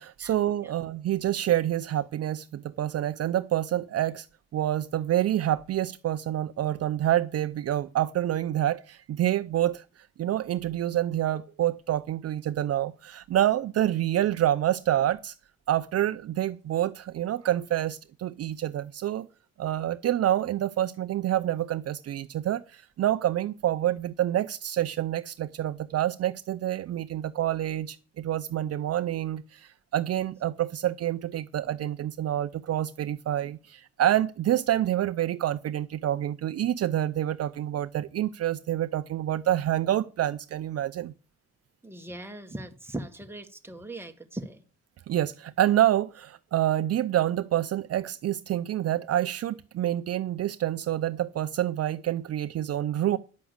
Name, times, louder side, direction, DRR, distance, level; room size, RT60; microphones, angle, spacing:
voice 1, 0.0-4.3 4.5-9.8 10.2-15.3 15.7-19.3 19.6-41.1 45.1-53.2, right 12 dB, 55° right, 0.6 m, -27 dB
voice 2, 41.8-44.6, right 1 dB, 10° right, 1.6 m, -39 dB
10.5 x 5.9 x 8.0 m
cardioid pair, 90°, 30 cm